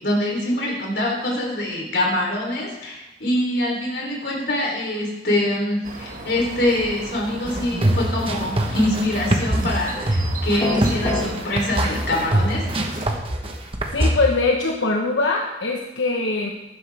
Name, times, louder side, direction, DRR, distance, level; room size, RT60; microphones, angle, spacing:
voice 1, 0.0-12.6, left 1 dB, 60° left, -1 dB, 3.5 m, -24 dB
sound 1, 5.8-13.2, right 1 dB, 45° right, 1.7 m, -35 dB
sound 2, 7.5-14.1, right 1 dB, 30° right, 1.2 m, -23 dB
sound 3, 10.6-11.3, left 2 dB, 20° left, 2.1 m, -24 dB
voice 2, 13.9-16.5, left 3 dB, 85° left, 0 dB, 1.2 m, -22 dB
15.5 x 11.5 x 3.5 m, 0.95 s
head